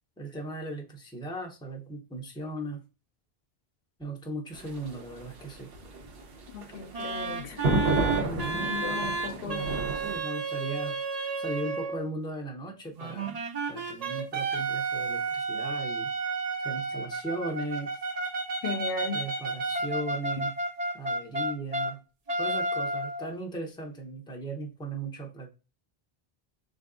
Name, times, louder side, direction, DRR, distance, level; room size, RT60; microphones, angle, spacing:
voice 1, 0.2-2.8 4.0-5.7 8.3-8.8 9.4-11.0 11.4-13.4 13.7-16.1 16.6-18.0 19.1-20.6 20.9-22.0 22.4-25.5, right 2 dB, 5° left, 0.6 m, -37 dB
sound 1, 4.5-10.2, right 2 dB, 70° right, 0.9 m, -31 dB
voice 2, 6.5-7.9 8.5-9.8 18.6-19.2, left 4 dB, 70° left, 0.8 m, -36 dB
sound 2, 6.9-12.1 13.0-21.9 22.3-23.3, right 3 dB, 45° right, 0.6 m, -32 dB
3.4 x 2.5 x 3.7 m
omnidirectional pair, 1.0 m